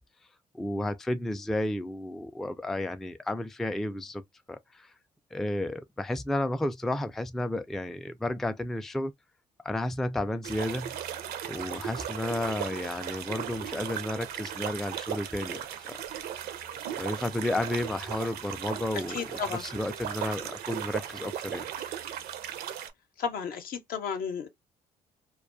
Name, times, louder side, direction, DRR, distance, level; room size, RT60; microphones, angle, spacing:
voice 1, 0.5-4.2 4.5-4.9 5.3-9.1 9.6-10.9 11.5-15.9 17.0-19.2 19.6-21.7, left 1 dB, ahead, 0.3 m, -32 dB
sound 1, 10.4-22.9, right 9 dB, 70° right, 0.5 m, -37 dB
voice 2, 18.9-19.6 23.2-24.5, left 7 dB, 65° left, 0.7 m, -33 dB
2.2 x 2.2 x 2.4 m
supercardioid pair, 60°, 17 cm